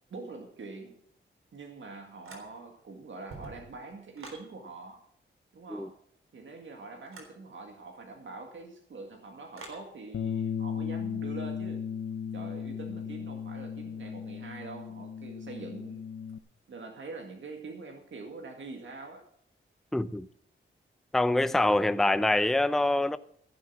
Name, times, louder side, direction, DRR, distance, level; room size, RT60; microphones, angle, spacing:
voice 1, 0.1-1.0 1.5-5.0 5.5-5.9 6.3-11.8 12.3-16.0 16.7-19.3 21.8-22.0, right 3 dB, 65° right, 2.1 m, -44 dB
sound 1, 2.2-2.8 3.2-4.5 7.1-7.4 9.6-9.9, right 3 dB, 85° right, 3.8 m, -47 dB
Bass guitar, 10.1-16.4, left 7 dB, 70° left, 0.7 m, -36 dB
voice 2, 19.9-20.3 21.1-23.2, left 2 dB, ahead, 0.5 m, -25 dB
14.5 x 7.6 x 7.4 m
wide cardioid pair, 90°, 21 cm